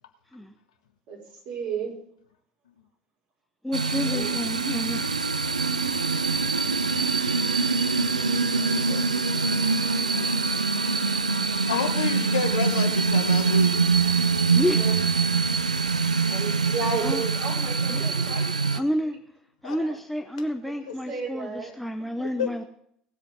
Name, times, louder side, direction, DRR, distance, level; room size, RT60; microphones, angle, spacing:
voice 1, 1.1-1.9 4.0-4.4 14.7-15.0 16.3-18.7 19.0-19.2 19.6-20.0 20.6-21.7, right 5 dB, 50° right, -2 dB, 5.7 m, -34 dB
voice 2, 3.6-5.0 10.1-10.3 14.5-14.8 17.0-17.2 17.9-18.0 18.7-19.2 19.6-22.6, equal, 5° left, 6 dB, 0.9 m, -29 dB
sound 1, 3.7-18.8, right 4 dB, 85° right, 0.5 m, -24 dB
voice 3, 11.7-13.7 19.6-19.8 20.9-21.0 22.2-22.5, left 8 dB, 70° left, 7 dB, 1.2 m, -29 dB
18.5 x 8.1 x 3.9 m, 0.68 s
figure-of-eight pair, 65°, 4 cm